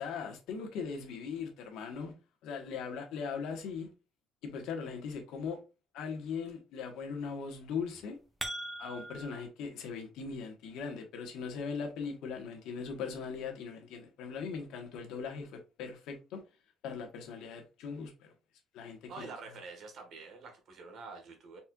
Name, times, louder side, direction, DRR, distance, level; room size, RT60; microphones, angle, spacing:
voice 1, 0.0-2.1 2.4-3.9 4.4-5.6 5.9-8.2 8.8-16.4 16.8-18.3 18.7-19.3, left 5 dB, 80° left, 1.2 m, -39 dB
sound 1, 7.9-9.4, right 1 dB, 10° right, 0.6 m, -40 dB
voice 2, 19.1-21.6, right 4 dB, 50° right, 1.4 m, -47 dB
4.2 x 4.2 x 2.3 m
cardioid pair, 175°, 0 cm